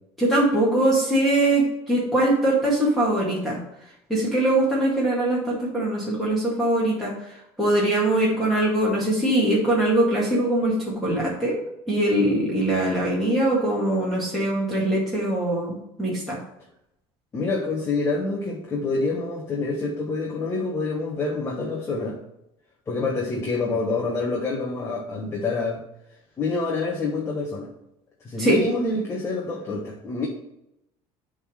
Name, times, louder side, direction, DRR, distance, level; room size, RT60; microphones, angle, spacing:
voice 1, 0.2-3.6 4.1-7.1 7.6-11.6 11.9-16.4 28.4-28.6, right 1 dB, ahead, -8 dB, 2.0 m, -22 dB
voice 2, 17.3-22.2 22.9-25.8 26.4-27.7 28.2-30.3, left 3 dB, 20° left, -2 dB, 1.2 m, -27 dB
8.0 x 3.8 x 6.3 m, 0.83 s
cardioid pair, 155°, 11 cm